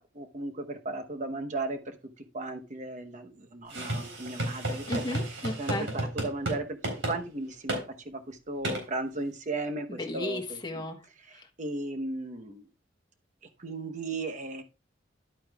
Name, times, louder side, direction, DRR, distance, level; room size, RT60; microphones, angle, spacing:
voice 1, 0.0-4.9 5.6-6.8 7.1-10.9 11.3-12.7 13.6-14.6, right 2 dB, 40° right, 6 dB, 1.0 m, -36 dB
sound 1, 3.7-6.6 6.8-7.2 7.7-7.8 8.6-8.8, right 1 dB, 75° right, 3.9 m, -32 dB
voice 2, 4.9-5.9 9.9-11.0 11.3-11.5, left 1 dB, 20° left, 2 dB, 1.2 m, -34 dB
11.0 x 8.5 x 2.3 m, 0.30 s
head